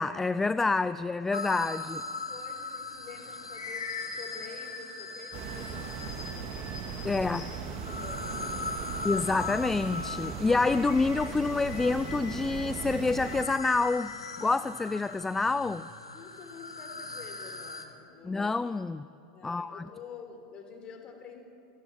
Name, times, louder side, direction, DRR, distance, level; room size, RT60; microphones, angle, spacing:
voice 1, 0.0-2.0 7.0-7.4 9.0-14.1 14.4-15.9 18.2-19.1 19.4-19.8, left 3 dB, 10° left, 16 dB, 0.5 m, -27 dB
sound 1, 1.3-6.5 7.4-17.9, left 4 dB, 80° left, 2.0 m, -40 dB
voice 2, 1.7-7.5 7.9-9.1 16.1-18.7 19.3-21.4, left 5 dB, 30° left, 5 dB, 4.2 m, -48 dB
sound 2, 3.0-7.8 10.5-14.5, left 5 dB, 65° left, 6.7 m, -43 dB
sound 3, 5.3-13.4, right 7 dB, 40° right, 2.0 m, -38 dB
27.0 x 19.0 x 8.8 m, 2.6 s
figure-of-eight pair, 85°, 3 cm